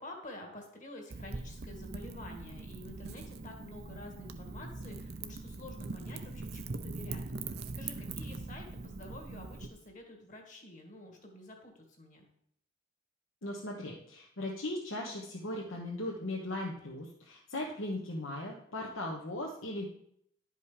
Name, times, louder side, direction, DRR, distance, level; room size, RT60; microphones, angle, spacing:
voice 1, 0.0-12.3, left 1 dB, 35° left, 3 dB, 1.8 m, -49 dB
Wind / Fire, 1.1-9.7, right 3 dB, 50° right, 0.6 m, -42 dB
voice 2, 13.4-19.9, left 1 dB, 65° left, -2 dB, 1.3 m, -38 dB
11.0 x 5.4 x 4.9 m, 0.70 s
head